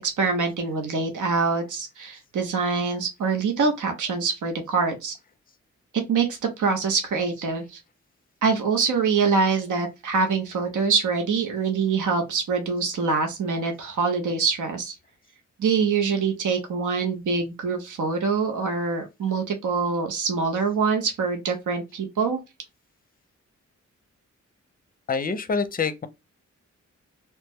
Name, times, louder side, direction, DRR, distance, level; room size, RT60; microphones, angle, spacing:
voice 1, 0.0-5.2 6.1-7.8 8.4-14.9 15.6-22.4, right 5 dB, 85° right, 0.8 m, -24 dB
voice 2, 25.1-26.1, left 5 dB, 30° left, 0.5 m, -26 dB
2.9 x 2.1 x 3.4 m
cardioid pair, 80°, 30 cm